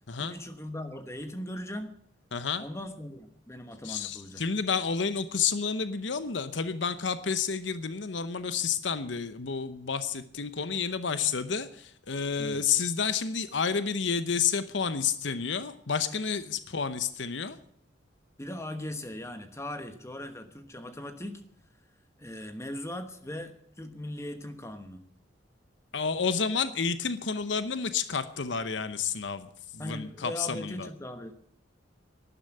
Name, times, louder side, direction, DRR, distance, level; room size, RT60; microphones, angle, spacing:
voice 1, 0.2-1.9 2.6-4.4 12.4-12.6 18.4-21.4 22.2-25.1 29.8-31.3, left 1 dB, 15° left, 8 dB, 1.1 m, -39 dB
voice 2, 2.3-2.6 3.8-17.6 25.9-30.9, left 6 dB, 75° left, 12 dB, 0.9 m, -30 dB
12.0 x 11.0 x 9.2 m, 0.66 s
head